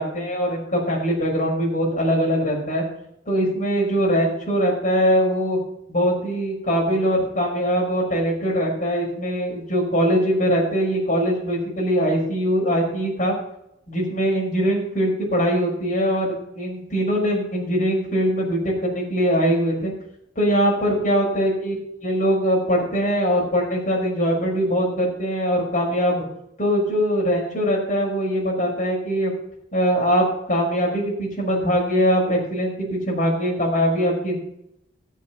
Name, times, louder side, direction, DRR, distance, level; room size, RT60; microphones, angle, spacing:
voice 1, 0.0-2.8 3.3-5.6 5.9-13.3 13.9-19.9 20.4-26.2 26.6-29.3 29.7-34.4, equal, 40° left, -2 dB, 5.4 m, -22 dB
17.0 x 7.4 x 5.8 m, 0.80 s
head